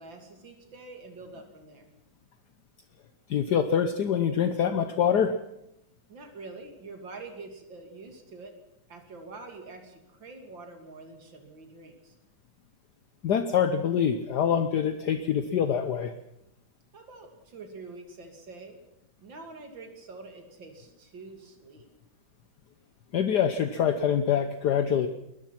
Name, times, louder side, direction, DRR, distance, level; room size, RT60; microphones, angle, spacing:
voice 1, 0.0-1.9 6.1-8.6 8.9-12.2 16.9-18.8 19.2-21.9, right 3 dB, 80° right, 5 dB, 3.3 m, -46 dB
voice 2, 3.3-5.4 13.2-16.1 23.1-25.1, left 8 dB, 65° left, 9 dB, 1.4 m, -25 dB
22.0 x 20.5 x 5.9 m, 0.84 s
omnidirectional pair, 2.0 m